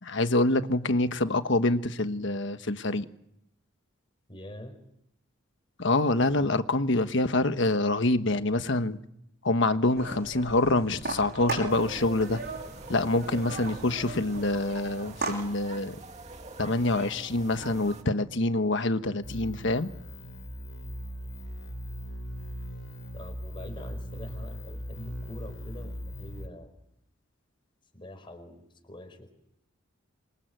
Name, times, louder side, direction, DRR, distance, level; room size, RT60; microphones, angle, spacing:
voice 1, 0.0-3.0 5.8-9.0 9.4-12.4 12.9-16.0 16.6-19.9, left 2 dB, 65° left, 1.3 m, -26 dB
voice 2, 4.3-4.8 13.3-13.7 23.1-26.7 27.9-29.3, left 1 dB, 25° left, 4.9 m, -45 dB
sound 1, 10.0-15.4, right 3 dB, 55° right, 7.5 m, -37 dB
sound 2, 11.7-18.0, right 3 dB, 35° right, 2.2 m, -45 dB
sound 3, 19.2-26.5, equal, 85° left, 3.8 m, -39 dB
27.5 x 24.5 x 7.8 m
head